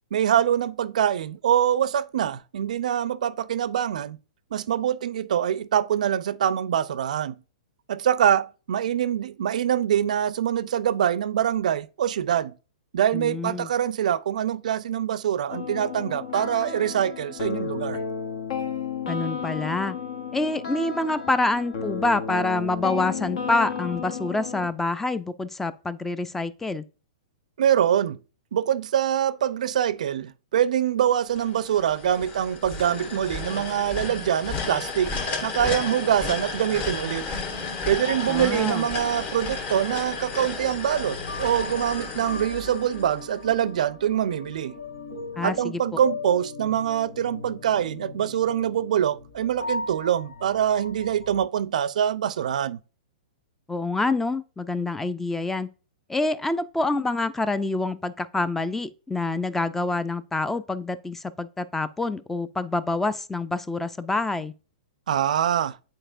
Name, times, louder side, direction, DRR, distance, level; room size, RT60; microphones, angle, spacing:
voice 1, 0.1-4.2 4.5-7.4 7.9-12.5 12.9-18.0 27.6-28.2 28.5-37.3 37.9-44.7 45.4-52.8 65.1-65.8, right 10 dB, 70° right, 0.4 m, -24 dB
voice 2, 13.1-13.7 19.1-20.0 20.3-26.8 38.3-38.9 45.4-45.8 53.7-55.7 56.1-64.5, left 2 dB, 5° left, 0.4 m, -27 dB
sound 1, 15.5-24.7, left 6 dB, 65° left, 1.1 m, -32 dB
sound 2, 31.3-43.4, left 4 dB, 30° left, 1.3 m, -33 dB
sound 3, 37.8-51.4, left 3 dB, 90° left, 3.3 m, -39 dB
9.0 x 4.2 x 2.5 m
hypercardioid pair, 130°, 4 cm